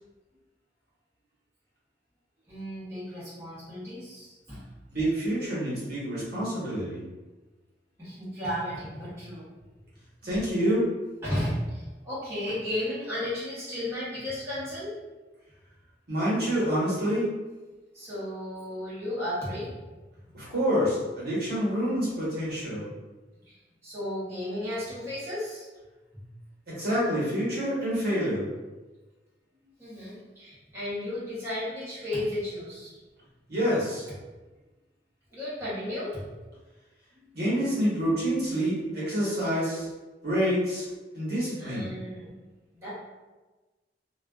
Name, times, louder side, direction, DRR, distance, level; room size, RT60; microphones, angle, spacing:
voice 1, 2.5-4.6 8.0-9.6 11.2-14.9 17.9-19.7 23.5-23.6 23.8-25.7 29.8-32.9 35.3-36.2 41.6-42.3 42.8-42.9, left 1 dB, 15° right, -11 dB, 0.8 m, -34 dB
voice 2, 4.9-7.0 10.2-10.8 16.1-17.3 20.3-22.8 26.7-28.5 33.5-34.0 37.3-39.9 40.2-40.9 41.1-41.9, equal, 60° right, -8 dB, 1.1 m, -27 dB
2.4 x 2.3 x 2.3 m, 1.2 s
head